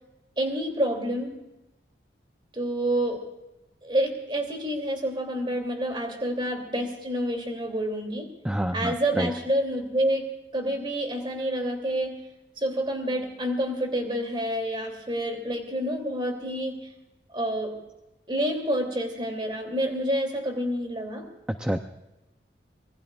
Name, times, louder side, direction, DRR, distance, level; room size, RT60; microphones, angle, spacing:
voice 1, 0.4-1.3 2.5-3.2 3.8-8.3 8.7-12.2 12.6-16.8 17.3-17.7 18.3-21.2, right 1 dB, 25° right, 3 dB, 2.9 m, -28 dB
voice 2, 8.4-9.3 21.6-21.8, equal, 5° right, 5 dB, 0.5 m, -27 dB
26.0 x 20.5 x 2.4 m, 0.97 s
head